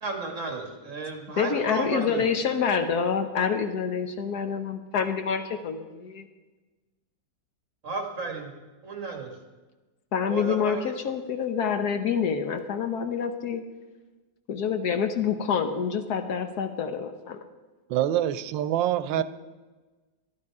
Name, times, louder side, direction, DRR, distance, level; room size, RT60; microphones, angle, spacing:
voice 1, 0.0-2.3 7.8-8.5 8.8-9.3 10.3-10.9, right 3 dB, 45° right, 2 dB, 2.0 m, -33 dB
voice 2, 1.4-6.3 10.1-13.6 14.5-17.4 19.2-19.3, left 6 dB, 65° left, 8 dB, 1.2 m, -27 dB
voice 3, 17.9-19.2, right 12 dB, 90° right, 14 dB, 1.3 m, -25 dB
12.5 x 11.0 x 4.7 m, 1.2 s
omnidirectional pair, 2.0 m